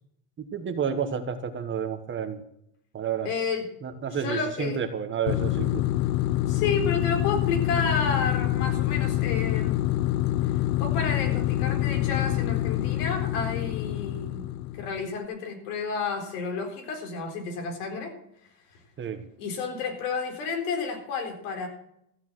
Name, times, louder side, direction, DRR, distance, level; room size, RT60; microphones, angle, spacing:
voice 1, 0.5-2.4 2.9-3.3 3.8-5.8 19.0-19.2, right 7 dB, 25° right, 8 dB, 1.2 m, -30 dB
voice 2, 3.2-3.6 4.1-4.8 6.5-9.8 10.5-14.4 14.7-18.1 19.4-21.7, left 5 dB, 75° left, 3 dB, 4.4 m, -31 dB
sound 1, 5.3-15.1, left 15 dB, 55° left, 0.6 m, -26 dB
14.5 x 7.2 x 7.5 m, 0.74 s
supercardioid pair, 130°, 45 cm